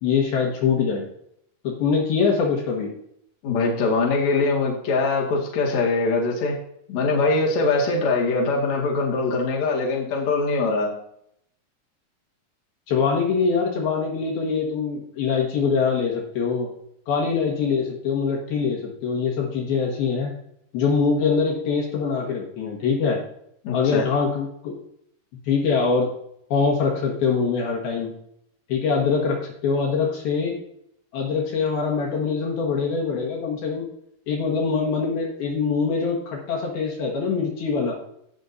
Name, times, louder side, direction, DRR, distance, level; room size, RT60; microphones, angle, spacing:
voice 1, 0.0-1.1 1.6-2.9 12.9-16.7 17.1-20.3 20.7-23.2 23.7-24.7 25.4-26.1 26.5-28.1 28.7-30.6 31.1-33.9 34.3-38.0, left 5 dB, 70° left, -1 dB, 3.3 m, -23 dB
voice 2, 3.4-6.6 6.9-10.9 23.6-24.1, left 3 dB, 50° left, -2 dB, 2.9 m, -22 dB
17.0 x 6.3 x 2.7 m, 0.72 s
omnidirectional pair, 4.8 m